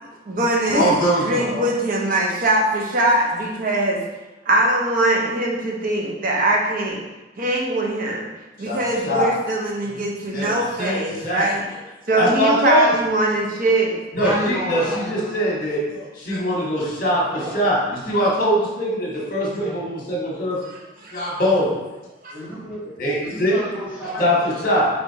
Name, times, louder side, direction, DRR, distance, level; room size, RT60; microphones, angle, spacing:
voice 1, 0.0-0.9 1.2-4.0 4.5-7.0 7.4-8.3 8.6-11.6 12.1-14.0 21.0-21.2 22.2-22.3, right 1 dB, 45° right, -1 dB, 0.7 m, -21 dB
voice 2, 0.7-1.7 8.6-9.3 9.9-11.8 12.1-12.9 14.1-20.6 21.1-21.7 23.0-23.6 24.0-24.9, equal, 50° left, -4 dB, 1.2 m, -22 dB
voice 3, 14.1-15.6 15.9-16.0 17.3-17.6 19.2-19.8 21.6-21.7 22.3-24.3 24.6-24.7, equal, 10° right, -9 dB, 1.3 m, -31 dB
4.5 x 3.2 x 2.8 m, 1.1 s
head